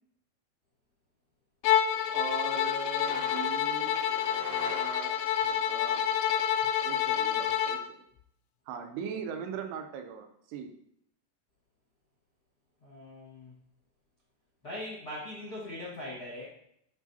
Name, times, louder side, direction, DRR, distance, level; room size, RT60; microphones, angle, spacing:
Bowed string instrument, 1.6-7.9, left 10 dB, 85° left, 2.7 m, -28 dB
voice 1, 2.1-4.0 4.7-5.2 5.4-6.0 6.8-7.8 8.7-10.7, right 7 dB, 80° right, 6 dB, 2.8 m, -40 dB
sound 1, 3.0-5.6, right 1 dB, 20° right, 0.5 m, -43 dB
voice 2, 12.8-13.5 14.6-16.4, left 1 dB, 50° left, -6 dB, 1.1 m, -40 dB
12.0 x 4.8 x 2.8 m, 0.73 s
omnidirectional pair, 5.0 m